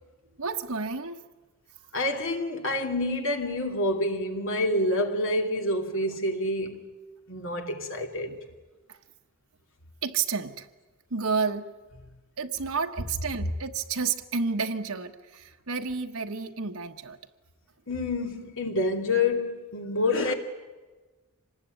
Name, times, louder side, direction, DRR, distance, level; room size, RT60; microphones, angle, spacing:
voice 1, 0.4-1.2 8.3-8.4 8.9-9.0 10.0-10.7 11.1-11.7 12.4-17.2, right 5 dB, 70° right, 1.2 m, -30 dB
voice 2, 1.9-6.8 7.3-8.3 17.9-20.3, left 2 dB, 60° left, 2.8 m, -27 dB
26.0 x 20.0 x 9.2 m
head